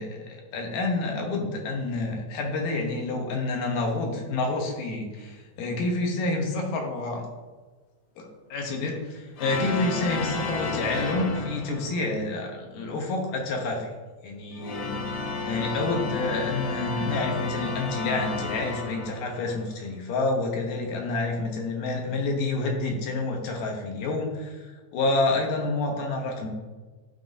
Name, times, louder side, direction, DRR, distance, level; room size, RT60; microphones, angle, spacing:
voice 1, 0.0-7.2 8.2-13.9 14.2-26.5, left 2 dB, 90° left, 1 dB, 2.6 m, -28 dB
sound 1, 9.4-12.1 14.4-19.6, left 4 dB, 70° left, 1.3 m, -32 dB
11.0 x 3.9 x 2.6 m, 1.3 s
omnidirectional pair, 3.8 m